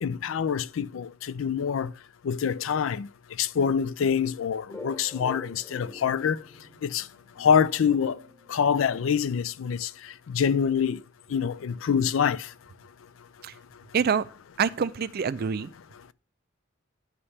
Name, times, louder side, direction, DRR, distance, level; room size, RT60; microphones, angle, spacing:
voice 1, 0.0-1.1 1.4-1.9 2.3-3.1 3.4-6.4 6.8-7.0 7.4-8.2 8.5-9.9 10.3-11.0 11.3-12.4, left 7 dB, 70° left, 0.4 m, -25 dB
sound 1, 4.7-9.3, left 1 dB, 15° left, 1.0 m, -46 dB
voice 2, 13.9-14.3 14.6-15.7, right 6 dB, 50° right, 0.4 m, -26 dB
9.8 x 3.3 x 5.6 m
head